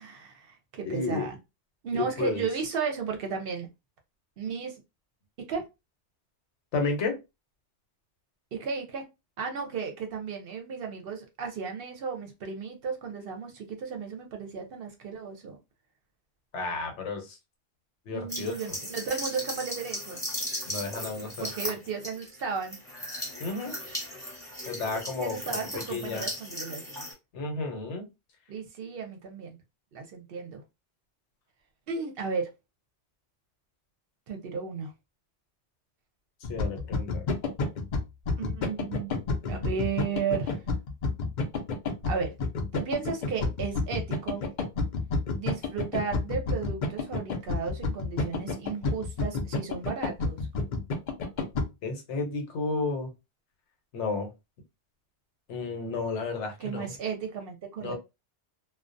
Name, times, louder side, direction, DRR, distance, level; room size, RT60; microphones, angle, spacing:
voice 1, 0.0-1.4 1.8-3.7 4.4-4.8 5.4-5.7 8.5-9.0 9.4-15.6 18.1-20.2 21.4-22.8 24.9-27.1 28.5-29.6 29.9-30.6 31.9-32.5 34.3-34.9 38.4-39.1 39.5-40.6 42.1-42.4 42.7-44.4 45.3-50.4 56.6-57.9, right 5 dB, 65° right, 0.7 m, -34 dB
voice 2, 0.8-1.3 1.9-2.5 6.7-7.2 16.5-17.4 18.1-18.5 20.7-21.7 23.4-23.8 24.7-25.4 25.7-26.2 27.3-28.1 36.5-37.3 51.8-53.1 53.9-54.3 55.5-56.9 57.8-57.9, left 3 dB, 80° left, 1.0 m, -32 dB
sound 1, 18.3-27.1, equal, 5° left, 0.7 m, -37 dB
sound 2, 36.4-51.7, left 3 dB, 55° left, 0.5 m, -29 dB
2.3 x 2.1 x 2.5 m
omnidirectional pair, 1.2 m